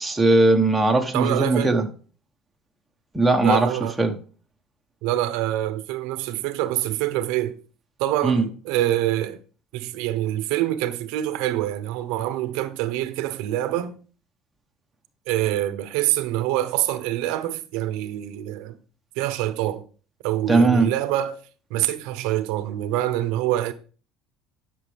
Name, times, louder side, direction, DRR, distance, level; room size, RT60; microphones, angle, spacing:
voice 1, 0.0-1.8 3.1-3.7 4.0-4.1 8.2-8.4 20.5-20.9, right 2 dB, 5° right, 1.0 m, -19 dB
voice 2, 1.1-1.7 3.4-4.0 5.0-7.6 8.0-9.4 9.7-13.9 15.3-18.8 19.2-19.8 20.2-21.4 21.7-23.7, right 14 dB, 80° right, 0.8 m, -25 dB
11.0 x 6.1 x 3.4 m
cardioid pair, 140°, 0 cm